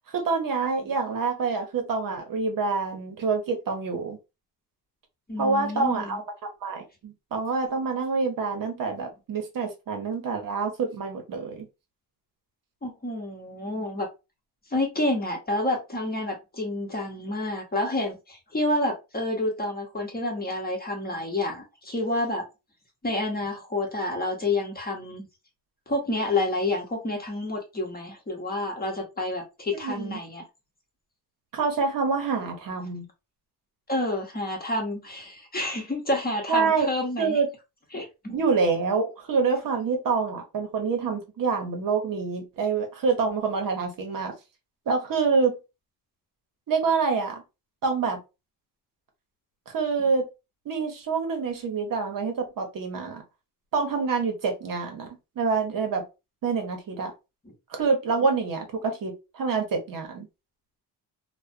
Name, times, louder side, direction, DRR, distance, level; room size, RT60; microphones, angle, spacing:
voice 1, 0.1-4.2 5.4-11.7 29.8-30.2 31.5-33.1 36.5-36.9 37.2-37.5 38.3-44.3 44.9-45.6 46.7-47.4 47.8-48.2 49.7-50.3 50.7-53.2 53.7-56.0 56.4-57.1 57.7-60.2, right 4 dB, 55° right, 4 dB, 0.8 m, -26 dB
voice 2, 5.3-6.2 12.8-14.1 14.7-22.4 23.0-25.3 25.9-30.4 33.9-37.4 37.9-38.4, left 2 dB, 25° left, 1 dB, 0.9 m, -29 dB
2.4 x 2.1 x 2.4 m, 0.26 s
cardioid pair, 90°, 40 cm